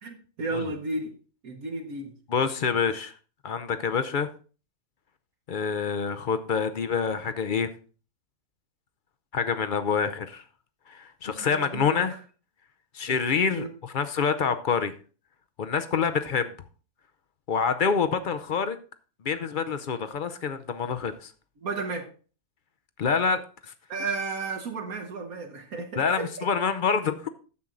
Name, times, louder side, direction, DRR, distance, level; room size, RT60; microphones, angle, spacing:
voice 1, 0.0-1.1 1.4-2.1 11.4-12.2 13.5-13.7 21.6-22.1 23.9-26.3, right 3 dB, 75° right, 1.6 m, -33 dB
voice 2, 2.3-3.1 3.4-4.3 5.5-7.7 9.3-10.4 10.9-12.1 12.9-14.9 15.6-16.5 17.5-18.8 19.2-21.3 23.0-23.4 23.7-23.8 26.0-27.3, left 6 dB, 55° left, 0.6 m, -26 dB
9.7 x 7.3 x 3.8 m
omnidirectional pair, 1.5 m